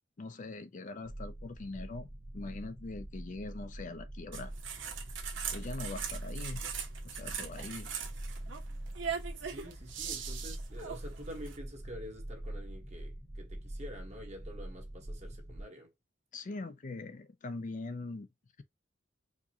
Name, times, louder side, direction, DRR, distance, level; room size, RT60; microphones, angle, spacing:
voice 1, 0.2-2.1 2.3-4.5 5.5-6.6 7.0-7.9 16.3-18.3, left 3 dB, 45° left, 0.5 m, -42 dB
sound 1, 1.0-15.6, right 1 dB, 5° right, 0.7 m, -44 dB
sound 2, 4.3-11.6, right 7 dB, 85° right, 0.9 m, -41 dB
voice 2, 9.4-15.9, equal, 40° right, 1.2 m, -48 dB
4.7 x 2.2 x 2.8 m
head